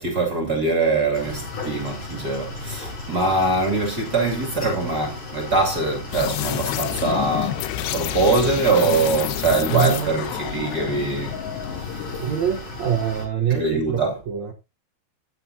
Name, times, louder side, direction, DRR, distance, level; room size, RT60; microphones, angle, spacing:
voice 1, 0.0-12.3 13.5-14.2, right 3 dB, 30° right, 2.4 m, -23 dB
sound 1, 1.1-13.3, left 2 dB, 45° left, 8.9 m, -35 dB
sound 2, 6.1-12.3, left 14 dB, 90° left, 2.9 m, -29 dB
voice 2, 9.7-10.2 12.2-14.5, right 8 dB, 85° right, 1.5 m, -24 dB
16.5 x 8.7 x 2.7 m
omnidirectional pair, 4.8 m